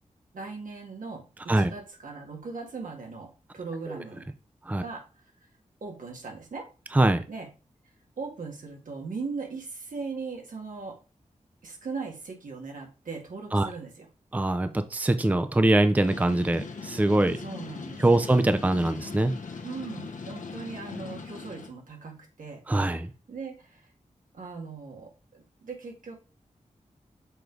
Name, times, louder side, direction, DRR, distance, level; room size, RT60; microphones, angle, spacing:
voice 1, 0.3-4.3 4.8-5.0 5.8-6.7 7.3-7.5 8.2-11.0 11.6-14.1 17.4-18.3 19.6-22.6 23.3-23.9 24.3-26.2, right 4 dB, 90° right, 1 dB, 2.0 m, -39 dB
voice 2, 6.9-7.2 13.5-13.7 14.3-17.4 18.0-19.4 22.7-23.1, right 1 dB, 10° right, 10 dB, 0.5 m, -23 dB
sound 1, 16.0-21.7, left 4 dB, 75° left, 1.1 m, -40 dB
6.9 x 3.9 x 4.6 m, 0.33 s
wide cardioid pair, 125°, 13 cm